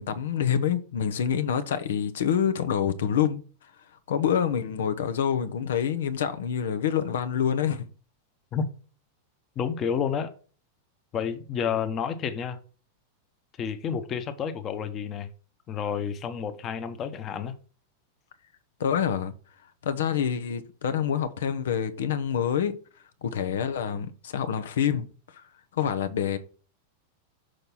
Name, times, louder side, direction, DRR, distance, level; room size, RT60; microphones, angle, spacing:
voice 1, 0.0-7.9 18.8-19.3 19.8-22.8 23.2-25.4 25.7-26.4, left 8 dB, 90° left, 1.0 m, -27 dB
voice 2, 9.6-10.3 11.1-12.6 13.6-15.3 15.7-17.5, left 7 dB, 25° left, 1.0 m, -30 dB
6.5 x 4.5 x 5.4 m
supercardioid pair, 150°, 0 cm